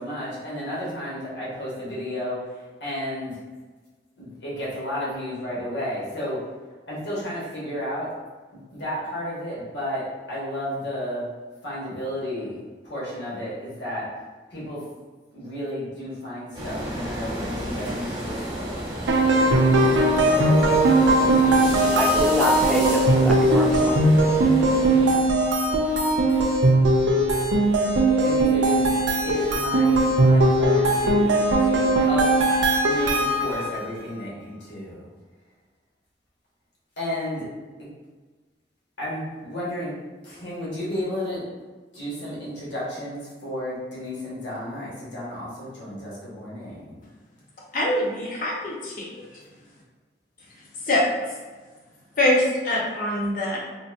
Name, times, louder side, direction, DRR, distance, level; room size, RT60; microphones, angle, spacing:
voice 1, 0.0-3.4 4.2-6.4 6.9-8.1 8.7-11.3 11.6-14.1 14.5-14.8 15.3-18.8 26.3-26.6 28.2-28.9 29.2-32.3 32.8-35.1 37.0-37.5 39.0-39.9 40.2-41.4 41.9-47.0, equal, 70° left, -7 dB, 1.4 m, -32 dB
sound 1, 16.5-25.1, equal, 20° right, 0.9 m, -31 dB
sound 2, 19.1-33.8, right 1 dB, 85° right, 0.5 m, -19 dB
voice 2, 22.0-24.0, left 1 dB, 5° left, -2 dB, 0.4 m, -27 dB
voice 3, 47.7-49.1 50.9-51.0 52.2-53.6, left 1 dB, 50° left, -4 dB, 0.9 m, -23 dB
4.0 x 2.7 x 2.5 m, 1.3 s
head